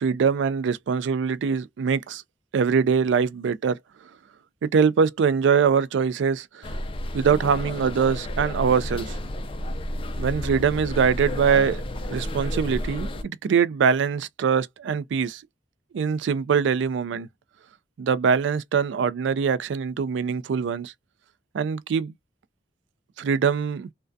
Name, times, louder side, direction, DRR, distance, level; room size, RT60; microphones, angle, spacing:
voice 1, 0.0-2.2 2.5-3.8 4.6-6.7 7.1-9.2 10.2-11.8 12.1-15.4 15.9-17.3 18.0-20.9 21.5-22.1 23.2-23.9, right 6 dB, 70° right, 0.3 m, -23 dB
sound 1, 6.6-13.2, left 1 dB, 30° left, 0.3 m, -31 dB
2.3 x 2.2 x 2.5 m
head